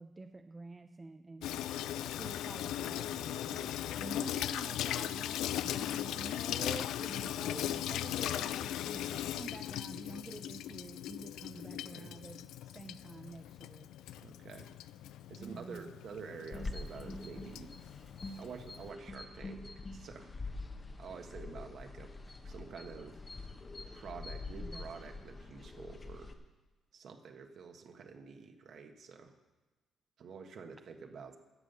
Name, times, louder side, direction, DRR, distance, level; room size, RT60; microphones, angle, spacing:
voice 1, 0.0-1.6 2.2-3.6 4.0-13.9 15.4-15.9 24.6-24.8, right 3 dB, 25° right, 6 dB, 0.6 m, -48 dB
Water tap faucet / Sink (filling or washing), 1.4-18.9, left 12 dB, 85° left, 0.4 m, -39 dB
voice 2, 3.1-3.8 11.6-12.1 14.2-14.7 15.3-17.7 18.4-19.6 19.9-20.3 21.0-22.1 22.4-23.2 23.9-26.3 26.9-29.3 30.2-31.4, right 5 dB, 60° right, 4 dB, 1.5 m, -48 dB
sound 1, 16.5-26.3, left 3 dB, 30° left, 1.2 m, -45 dB
12.5 x 7.7 x 6.9 m, 1.1 s
cardioid pair, 90°, 0 cm